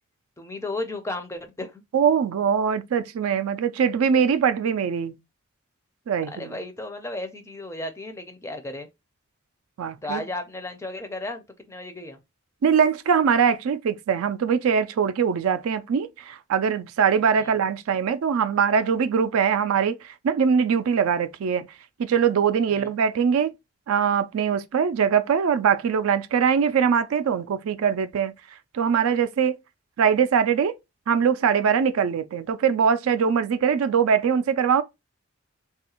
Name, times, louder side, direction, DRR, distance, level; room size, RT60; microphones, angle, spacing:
voice 1, 0.4-1.8 6.3-8.9 10.0-12.2 17.4-17.6 22.7-22.9, left 2 dB, 15° left, 0.4 m, -34 dB
voice 2, 1.9-5.2 6.1-6.6 9.8-10.2 12.6-21.7 22.0-23.5 23.9-28.3 28.7-29.6 30.0-30.8 31.1-34.8, right 7 dB, 80° right, 0.4 m, -22 dB
3.4 x 2.3 x 2.9 m
head